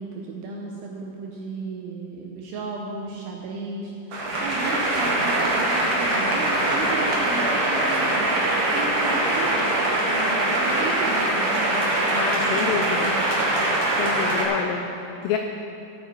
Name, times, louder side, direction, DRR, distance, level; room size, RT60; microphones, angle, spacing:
voice 1, 0.0-9.7 10.1-13.2, right 3 dB, 80° right, -1 dB, 2.4 m, -34 dB
sound 1, 4.1-14.4, right 1 dB, 50° right, 1.7 m, -23 dB
voice 2, 12.1-13.2 14.0-15.4, left 7 dB, 90° left, 4 dB, 2.4 m, -28 dB
15.5 x 8.4 x 4.6 m, 2.7 s
omnidirectional pair, 5.6 m